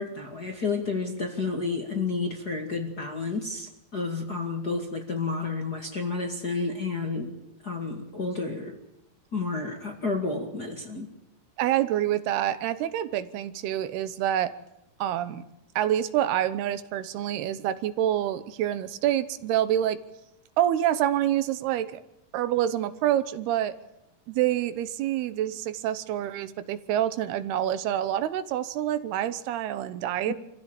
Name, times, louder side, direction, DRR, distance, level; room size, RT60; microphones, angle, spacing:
voice 1, 0.0-7.4 7.6-8.8 9.3-11.1 30.3-30.4, left 4 dB, 35° left, 1 dB, 1.8 m, -31 dB
voice 2, 11.6-14.5 15.0-15.4 15.8-20.0 20.6-22.0 22.3-23.7 24.3-30.3, right 12 dB, 80° right, 13 dB, 3.0 m, -27 dB
25.5 x 15.5 x 9.0 m, 0.87 s
omnidirectional pair, 4.6 m